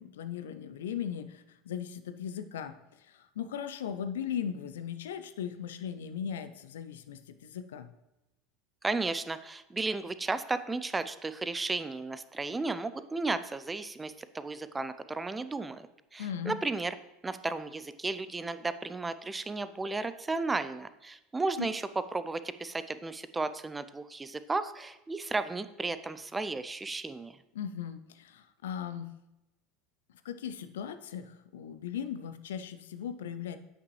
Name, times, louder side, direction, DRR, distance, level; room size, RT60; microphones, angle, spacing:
voice 1, 0.0-2.7 3.1-7.9 16.2-16.6 21.6-21.7 27.5-29.1 30.2-33.6, left 8 dB, 70° left, 10 dB, 0.4 m, -38 dB
voice 2, 8.8-16.9 17.2-21.8 22.1-27.4, right 3 dB, 15° right, 13 dB, 0.4 m, -34 dB
8.2 x 5.5 x 3.2 m, 0.95 s
figure-of-eight pair, 75°, 0 cm